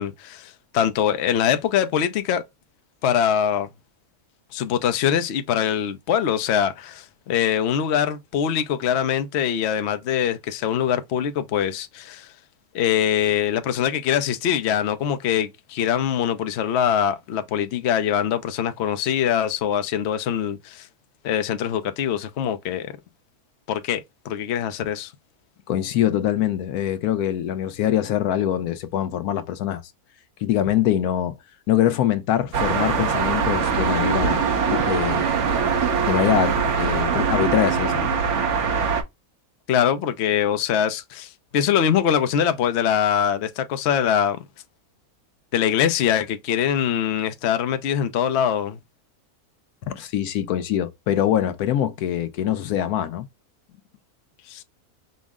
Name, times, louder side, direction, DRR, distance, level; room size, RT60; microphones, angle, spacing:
voice 1, 0.0-2.4 3.0-3.7 4.5-12.3 12.7-20.9 21.2-23.0 23.7-25.1 39.7-44.4 45.5-48.8 54.5-54.6, left 9 dB, 60° left, 0.8 m, -23 dB
voice 2, 25.7-29.8 30.4-31.4 31.7-35.2 36.1-38.1 49.9-53.3, left 11 dB, 85° left, 1.1 m, -23 dB
sound 1, 32.5-39.0, right 5 dB, 55° right, 1.1 m, -22 dB
5.3 x 2.1 x 3.5 m
omnidirectional pair, 1.6 m